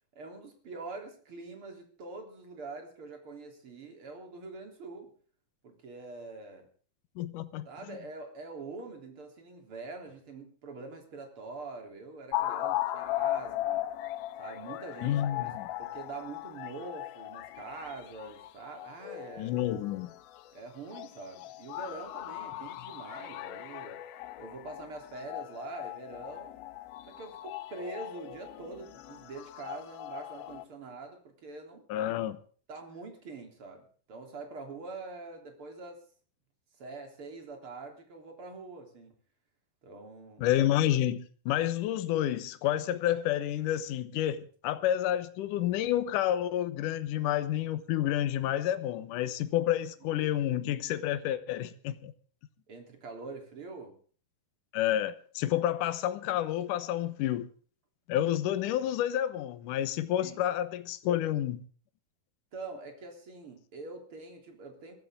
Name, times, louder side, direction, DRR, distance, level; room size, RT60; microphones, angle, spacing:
voice 1, 0.2-5.1 5.6-6.7 7.7-13.9 14.4-15.5 15.8-19.5 20.5-24.0 24.4-26.6 27.1-31.9 32.7-36.0 36.8-39.1 39.8-40.5 52.7-54.0 60.2-60.4 62.5-65.0, right 3 dB, 35° right, 4.0 m, -44 dB
voice 2, 7.2-8.0 15.0-15.7 19.4-20.1 31.9-32.4 40.4-52.1 54.7-57.5 58.1-61.7, left 12 dB, 70° left, 2.4 m, -29 dB
sound 1, 12.3-20.5 20.9-30.6, left 14 dB, 85° left, 2.7 m, -38 dB
23.0 x 13.0 x 3.7 m
omnidirectional pair, 4.2 m